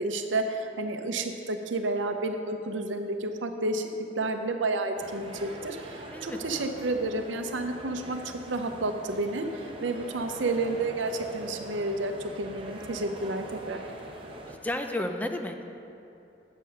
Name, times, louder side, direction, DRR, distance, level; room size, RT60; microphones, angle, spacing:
voice 1, 0.0-3.9 4.2-8.2 8.5-13.8, right 2 dB, 85° right, 6 dB, 0.7 m, -30 dB
sound 1, 5.0-14.6, right 1 dB, 30° right, 0.8 m, -43 dB
voice 2, 6.1-6.6 14.5-15.8, left 1 dB, 10° left, 5 dB, 0.4 m, -33 dB
8.1 x 6.5 x 5.7 m, 2.8 s
head